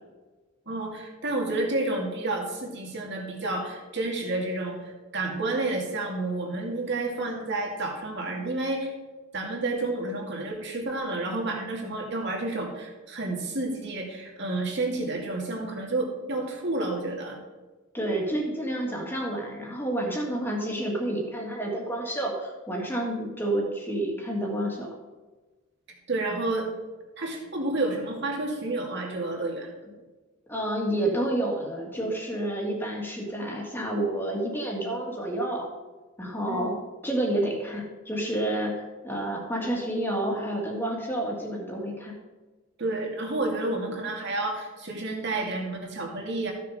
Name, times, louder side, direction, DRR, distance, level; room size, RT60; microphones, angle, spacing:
voice 1, 0.7-8.9 9.3-17.4 26.1-26.7 27.2-29.7 36.4-36.6 42.8-46.5, right 2 dB, 55° right, 0 dB, 2.5 m, -30 dB
voice 2, 17.9-24.9 30.5-35.7 36.2-36.7 37.0-38.8 39.0-42.1, right 1 dB, 10° left, -1 dB, 2.1 m, -29 dB
14.5 x 6.7 x 5.0 m, 1.2 s
head